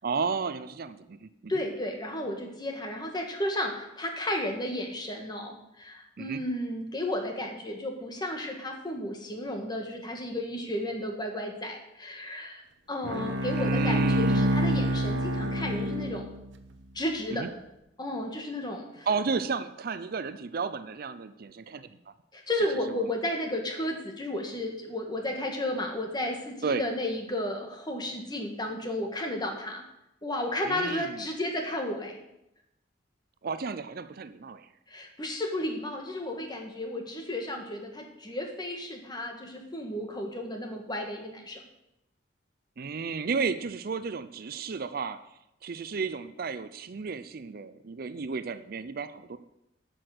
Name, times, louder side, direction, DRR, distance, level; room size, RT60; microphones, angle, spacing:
voice 1, 0.0-1.5 6.2-6.4 13.6-14.5 17.3-17.5 19.1-22.0 22.9-23.1 26.6-26.8 30.6-31.3 33.4-34.7 42.8-45.2 45.6-49.4, right 5 dB, 55° right, 13 dB, 0.5 m, -33 dB
voice 2, 1.5-12.6 12.9-16.3 17.0-17.5 18.0-19.1 22.3-29.8 30.2-32.2 34.9-41.6, left 1 dB, 25° left, 3 dB, 1.8 m, -33 dB
Bowed string instrument, 13.0-16.6, equal, 75° right, 0.9 m, -27 dB
11.5 x 6.1 x 7.8 m, 0.86 s
head